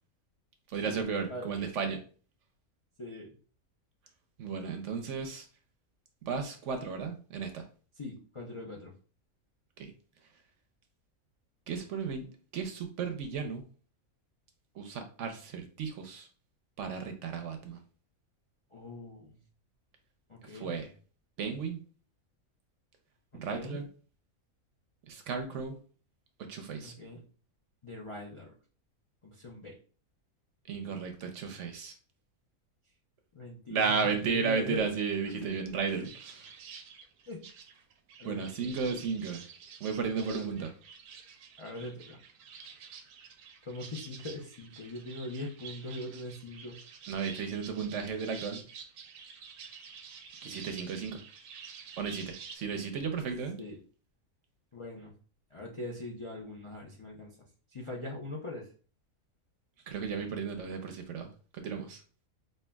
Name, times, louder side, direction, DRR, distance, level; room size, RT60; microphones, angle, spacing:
voice 1, 0.7-2.0 4.4-5.5 6.2-7.7 9.8-9.9 11.7-13.6 14.7-16.3 16.8-17.8 20.4-20.9 21.4-21.8 23.3-23.9 25.1-25.8 26.4-26.9 30.7-32.0 33.7-36.5 38.2-39.4 39.8-40.7 47.1-48.6 50.4-51.2 52.0-53.6 59.9-62.0, right 5 dB, 65° right, 5 dB, 0.8 m, -34 dB
voice 2, 3.0-3.3 8.0-8.9 18.7-19.4 20.3-20.7 23.5-23.8 26.8-27.2 27.8-28.5 29.2-29.8 33.3-34.9 35.3-35.8 37.3-37.4 38.2-38.8 40.2-40.5 41.6-42.2 43.6-46.8 53.6-53.8 54.7-55.1 55.5-57.3 57.7-58.7, left 1 dB, 50° left, -2 dB, 0.3 m, -41 dB
sound 1, 36.0-52.6, right 6 dB, 85° right, 1.1 m, -49 dB
5.5 x 2.6 x 2.3 m, 0.40 s
omnidirectional pair, 1.5 m